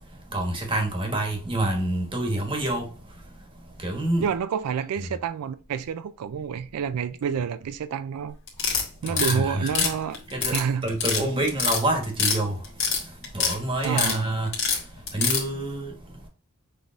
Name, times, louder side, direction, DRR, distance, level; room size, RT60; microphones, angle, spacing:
voice 1, 0.3-2.9 3.8-4.3 9.1-9.9 10.3-10.6 10.8-12.5 13.3-14.5 15.1-15.9, right 1 dB, 20° right, 1.2 m, -27 dB
voice 2, 4.2-8.4 9.0-10.2 10.5-10.9 13.8-14.4, right 7 dB, 90° right, 0.3 m, -28 dB
sound 1, 8.5-9.3 9.7-10.6 10.9-11.2 11.5-12.4 12.6-13.5 13.8-14.2 14.5-15.4, left 6 dB, 60° left, 1.6 m, -24 dB
6.3 x 3.4 x 2.4 m
head